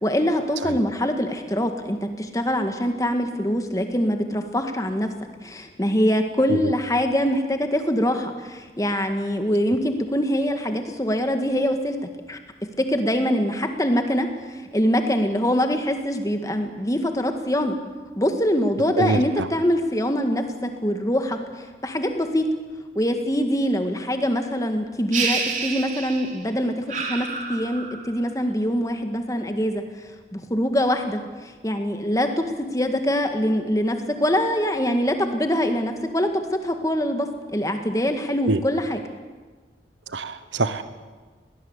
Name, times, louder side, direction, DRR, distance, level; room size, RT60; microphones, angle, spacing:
voice 1, 0.0-5.1 5.4-12.0 12.3-12.4 12.8-17.8 18.2-21.4 21.8-22.5 23.0-29.8 30.3-32.5 32.7-39.0, equal, 20° left, 6 dB, 1.8 m, -24 dB
voice 2, 19.0-19.5 38.5-38.6 40.1-40.8, right 2 dB, 85° right, 12 dB, 1.2 m, -24 dB
sound 1, 25.1-26.5 26.9-28.2, right 5 dB, 40° right, 3.4 m, -28 dB
21.5 x 18.5 x 8.2 m, 1.4 s
head